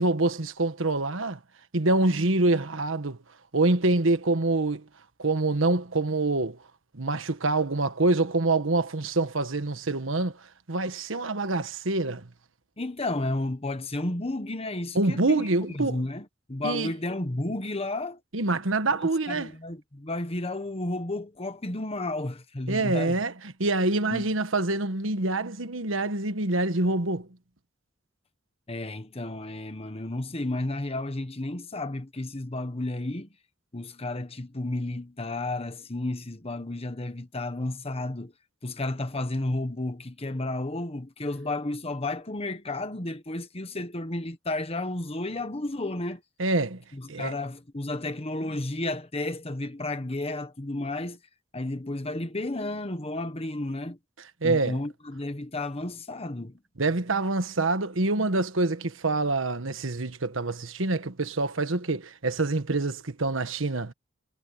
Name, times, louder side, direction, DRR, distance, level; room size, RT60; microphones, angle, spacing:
voice 1, 0.0-1.4 1.7-3.2 3.5-4.8 5.2-6.6 6.9-10.3 10.7-12.3 14.9-16.0 16.6-16.9 18.3-19.5 22.7-23.3 23.6-27.3 46.4-46.8 47.1-47.3 54.4-54.8 56.8-63.9, right 2 dB, 85° right, 1.4 m, -26 dB
voice 2, 12.8-18.2 19.0-23.2 24.1-24.3 28.7-33.3 33.7-38.3 38.6-46.2 46.9-51.2 51.5-54.0 54.4-56.6, left 2 dB, 30° left, 1.4 m, -32 dB
head